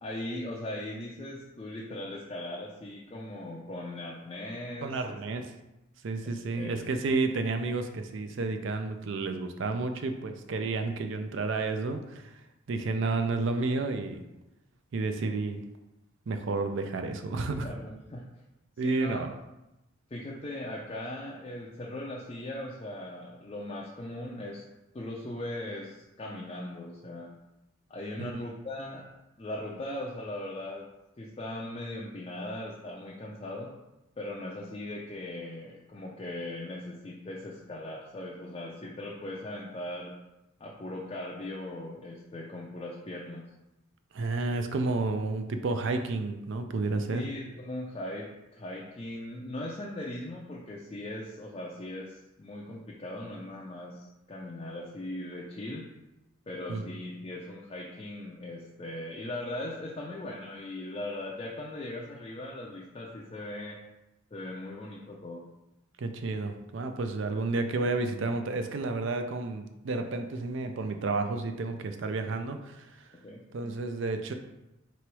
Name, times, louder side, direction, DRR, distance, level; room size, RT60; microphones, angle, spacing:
voice 1, 0.0-5.2 6.5-6.8 17.4-18.3 18.8-19.3 20.1-24.6 24.9-27.3 27.9-29.1 29.4-30.9 31.2-33.7 34.2-40.1 40.6-43.4 47.1-55.8 56.5-63.8 64.3-65.5 73.2-73.4, left 1 dB, 25° left, -4 dB, 0.4 m, -39 dB
voice 2, 4.8-5.4 6.0-12.3 12.7-14.2 14.9-15.6 16.3-17.7 18.8-19.3 28.2-28.4 44.1-47.2 56.7-56.8 66.0-72.9 73.5-74.3, right 3 dB, 60° right, 7 dB, 0.4 m, -31 dB
3.1 x 2.9 x 4.6 m, 0.95 s
head